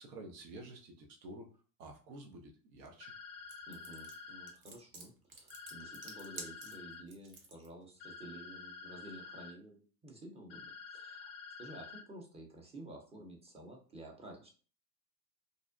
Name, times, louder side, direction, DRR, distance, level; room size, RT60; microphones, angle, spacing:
voice 1, 0.0-1.5 1.8-3.1, right 2 dB, 80° right, 2 dB, 0.8 m, -50 dB
sound 1, 3.0-4.5 5.5-7.0 8.0-9.5 10.5-12.0, left 5 dB, 45° left, 0.5 m, -49 dB
sound 2, 3.5-7.7, right 3 dB, 40° right, 0.8 m, -50 dB
voice 2, 3.7-11.3 11.6-14.5, right 1 dB, 15° right, 0 dB, 0.6 m, -52 dB
2.6 x 2.0 x 2.4 m, 0.40 s
hypercardioid pair, 95°, 49 cm